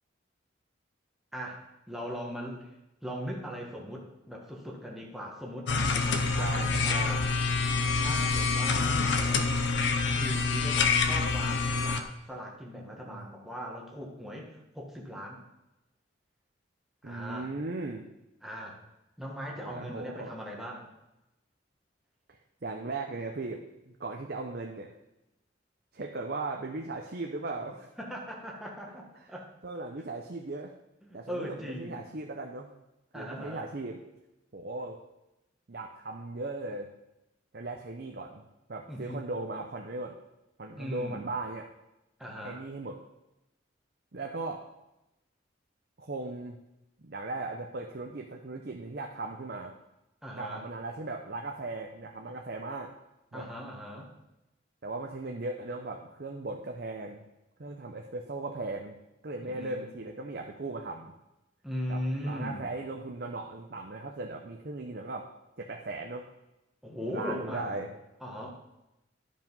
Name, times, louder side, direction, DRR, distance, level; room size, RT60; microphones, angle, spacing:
voice 1, 1.3-2.7 3.0-7.3 7.9-9.5 10.1-15.4 17.0-17.5 18.4-18.8 19.2-20.9 28.0-29.5 31.0-32.1 33.1-33.7 38.9-39.3 40.8-41.3 42.2-42.6 50.2-50.7 53.3-54.1 59.4-59.9 61.6-62.7 66.8-67.9 68.2-68.5, equal, ahead, -2 dB, 1.6 m, -39 dB
sound 1, 5.7-12.0, left 4 dB, 70° left, 0.7 m, -27 dB
voice 2, 6.3-7.2 12.8-13.3 17.0-18.0 19.6-20.3 22.6-24.9 25.9-27.9 29.6-30.7 31.1-32.7 33.1-34.0 34.5-35.0 35.7-36.9 37.5-38.4 38.7-40.1 40.6-41.7 42.4-43.0 44.1-44.6 46.0-46.6 47.0-49.7 50.4-52.9 53.3-53.5 54.8-57.3 57.6-59.0 59.2-61.1 61.9-65.3 65.6-66.3 67.0-67.9, right 2 dB, 55° right, 2 dB, 0.7 m, -38 dB
11.0 x 5.2 x 5.4 m, 0.93 s
head